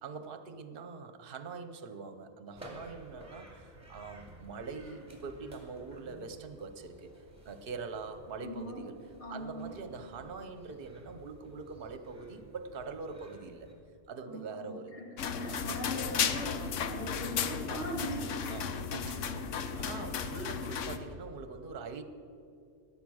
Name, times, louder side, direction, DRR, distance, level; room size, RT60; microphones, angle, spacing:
voice 1, 0.0-7.1 7.4-9.0 9.3-13.7 14.1-14.9 15.4-15.7 17.7-17.9 18.5-22.0, right 4 dB, 55° right, 10 dB, 1.0 m, -43 dB
sound 1, 2.5-13.7, equal, 15° right, 2.4 m, -54 dB
voice 2, 8.4-8.8 9.2-9.7 14.3-18.4, equal, 70° left, -2 dB, 3.0 m, -40 dB
sound 2, 15.2-21.0, left 7 dB, 85° left, 1.1 m, -34 dB
19.0 x 7.2 x 6.3 m, 2.6 s
omnidirectional pair, 1.2 m